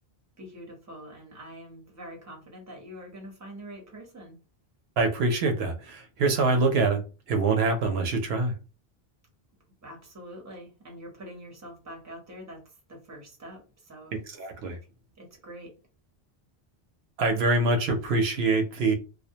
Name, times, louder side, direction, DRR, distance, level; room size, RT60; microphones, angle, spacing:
voice 1, 0.4-4.4 9.8-12.6 12.9-14.2 15.2-15.7, equal, 20° right, 1 dB, 0.7 m, -44 dB
voice 2, 5.0-7.0 7.3-8.5 14.3-14.8 17.2-18.9, right 3 dB, 80° right, 5 dB, 0.8 m, -24 dB
2.4 x 2.1 x 2.7 m, 0.32 s
omnidirectional pair, 1.0 m